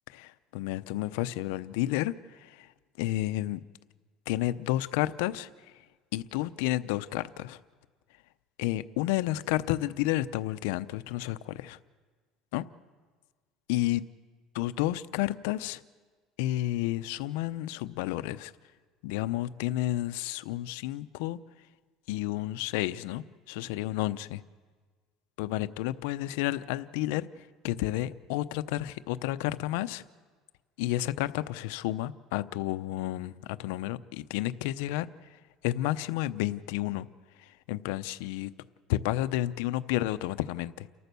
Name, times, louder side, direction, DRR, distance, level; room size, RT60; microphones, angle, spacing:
voice 1, 0.1-2.7 3.0-3.6 4.3-5.5 6.1-7.6 8.6-11.8 12.5-12.6 13.7-14.0 14.5-15.8 16.4-18.5 19.0-21.4 22.1-24.4 25.4-30.0 30.8-35.1 35.6-37.1 37.4-38.5 38.9-40.9, left 15 dB, 90° left, 14 dB, 0.7 m, -31 dB
30.0 x 14.0 x 6.9 m, 1.5 s
cardioid pair, 150°, 0 cm